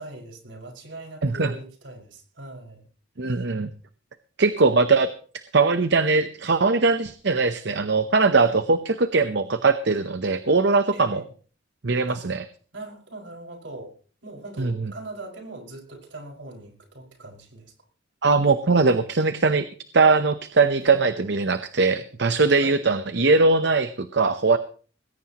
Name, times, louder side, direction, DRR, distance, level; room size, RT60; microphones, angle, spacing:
voice 1, 0.0-2.9 3.2-3.6 8.3-8.6 10.9-11.3 12.1-12.3 12.7-13.9 14.2-17.7 20.8-21.1 22.6-22.8, right 2 dB, 80° right, 2 dB, 5.7 m, -41 dB
voice 2, 1.2-1.5 3.2-3.7 4.4-5.1 5.5-11.2 11.8-12.4 14.6-14.7 18.2-19.7 19.9-24.6, right 3 dB, 65° right, 11 dB, 0.9 m, -20 dB
20.0 x 17.0 x 3.0 m, 0.41 s
head